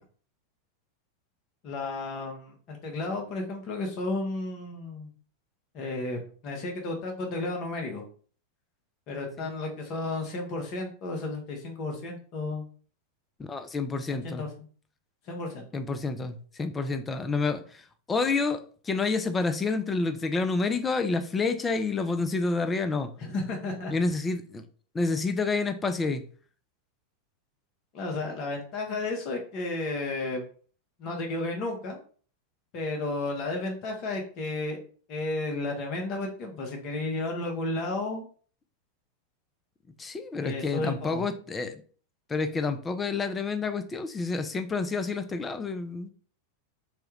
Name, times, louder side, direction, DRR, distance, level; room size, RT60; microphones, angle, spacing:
voice 1, 1.6-5.1 5.7-8.0 9.1-12.6 14.1-14.5 15.3-15.7 23.2-23.9 27.9-30.4 31.0-32.0 32.7-34.8 35.1-38.2 40.4-41.3, left 2 dB, 45° left, 1.0 m, -33 dB
voice 2, 13.4-14.4 15.7-23.1 23.9-24.7 24.9-26.2 40.0-41.8 42.3-46.1, left 4 dB, 20° left, 0.4 m, -29 dB
3.1 x 2.3 x 3.0 m
hypercardioid pair, 100°, 0 cm